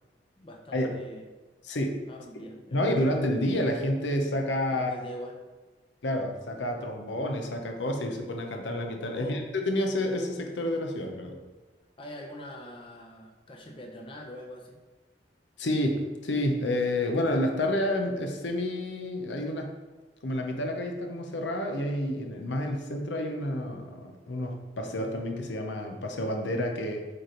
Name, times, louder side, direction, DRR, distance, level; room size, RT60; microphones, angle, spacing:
voice 1, 0.4-1.3 2.1-2.9 4.7-5.4 9.1-9.4 12.0-14.8, equal, 30° left, 0 dB, 0.7 m, -43 dB
voice 2, 1.6-2.1 2.7-5.0 6.0-11.4 15.6-19.8 20.2-27.1, left 1 dB, 85° left, 3 dB, 0.8 m, -29 dB
8.5 x 3.4 x 3.9 m, 1.2 s
head